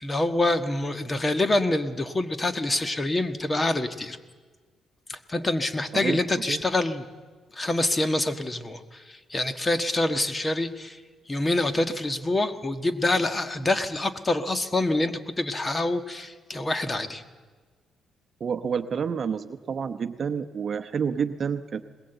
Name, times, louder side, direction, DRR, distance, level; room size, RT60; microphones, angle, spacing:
voice 1, 0.0-4.2 5.1-7.0 7.5-11.0 11.3-17.2, left 2 dB, 25° left, 9 dB, 1.4 m, -26 dB
voice 2, 18.4-21.8, right 6 dB, 50° right, 9 dB, 0.9 m, -29 dB
21.5 x 20.5 x 8.0 m, 1.4 s
cardioid pair, 90°, 0 cm